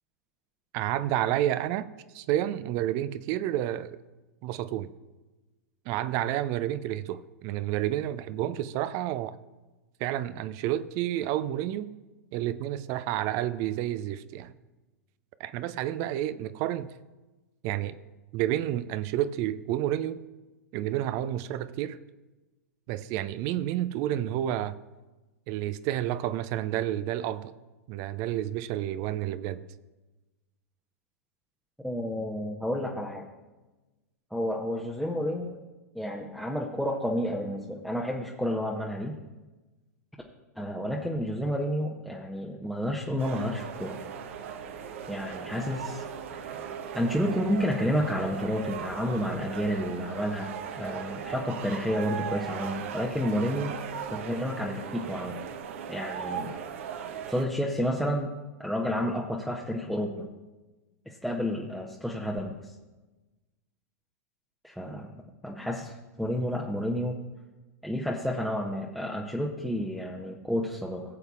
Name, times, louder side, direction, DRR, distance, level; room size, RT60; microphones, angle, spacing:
voice 1, 0.7-1.9 2.1-4.0 4.4-4.9 5.9-9.3 10.0-11.9 12.3-14.5 15.4-16.9 17.6-18.0 18.3-20.2 20.7-22.0 22.9-24.8 25.5-27.5 27.9-29.6, right 12 dB, 35° right, 14 dB, 0.4 m, -30 dB
voice 2, 31.8-33.3 34.3-35.6 35.9-39.1 40.6-44.0 45.1-46.5 46.9-53.8 54.1-55.4 55.9-56.6 57.3-58.3 58.6-60.3 61.1-62.5 64.6-65.1 65.4-67.2 67.8-71.0, equal, ahead, -2 dB, 0.8 m, -30 dB
sound 1, 43.2-57.5, right 7 dB, 55° right, 0.9 m, -38 dB
17.5 x 7.9 x 2.4 m, 1.1 s
figure-of-eight pair, 100°, 9 cm